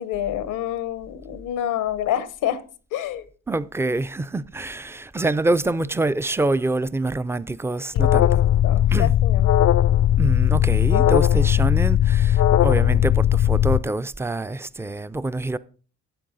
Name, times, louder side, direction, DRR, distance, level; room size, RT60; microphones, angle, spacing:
voice 1, 0.0-2.6 2.9-3.3 7.9-8.3 8.6-9.5, left 11 dB, 90° left, 0.9 m, -28 dB
voice 2, 3.5-8.4 8.9-9.1 10.2-15.6, right 2 dB, 10° right, 0.4 m, -26 dB
Alarm, 8.0-13.8, left 11 dB, 55° left, 0.5 m, -18 dB
12.5 x 8.4 x 3.9 m
cardioid pair, 90°, 30 cm